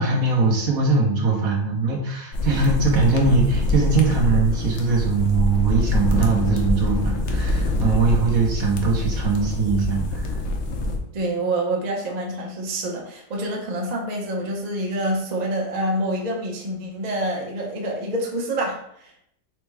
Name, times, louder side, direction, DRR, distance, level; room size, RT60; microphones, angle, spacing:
voice 1, 0.0-10.3, right 4 dB, 60° right, 0 dB, 1.2 m, -21 dB
sound 1, 2.3-11.0, left 2 dB, 65° left, 0.7 m, -24 dB
voice 2, 11.1-19.2, right 1 dB, 40° right, -1 dB, 0.6 m, -27 dB
4.4 x 2.1 x 4.6 m, 0.71 s
omnidirectional pair, 1.8 m